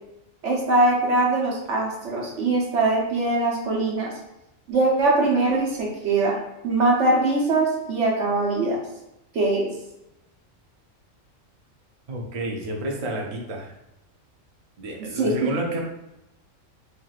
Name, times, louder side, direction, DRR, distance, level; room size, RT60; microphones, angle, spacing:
voice 1, 0.4-4.1 4.7-6.3 6.6-8.8 9.3-9.7 15.2-15.5, right 2 dB, 60° right, -2 dB, 1.2 m, -22 dB
voice 2, 12.1-13.7 14.8-15.8, right 1 dB, 45° right, 0 dB, 0.5 m, -30 dB
4.4 x 3.3 x 2.4 m, 0.91 s
omnidirectional pair, 1.4 m